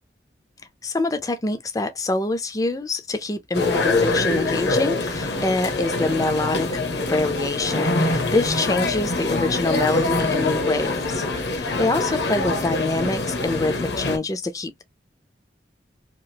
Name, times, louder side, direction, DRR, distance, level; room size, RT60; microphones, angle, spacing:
voice 1, 0.8-11.3 11.6-14.8, left 2 dB, 20° left, 0.4 m, -25 dB
sound 1, 3.5-14.2, left 2 dB, 70° left, 0.8 m, -24 dB
2.9 x 2.4 x 2.7 m
head